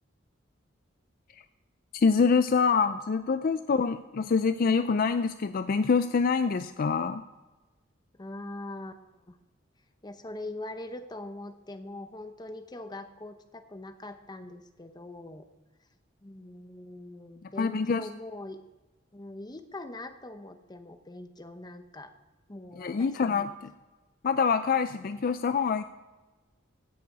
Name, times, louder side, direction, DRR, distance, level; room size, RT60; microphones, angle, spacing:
voice 1, 1.9-7.2 17.6-18.1 22.8-23.7 24.2-25.8, left 5 dB, 50° left, 11 dB, 0.4 m, -25 dB
voice 2, 8.2-9.4 10.0-15.5 16.2-18.6 19.1-22.1 22.5-23.5, left 2 dB, 20° left, 8 dB, 0.8 m, -42 dB
16.0 x 6.8 x 4.8 m, 1.2 s
head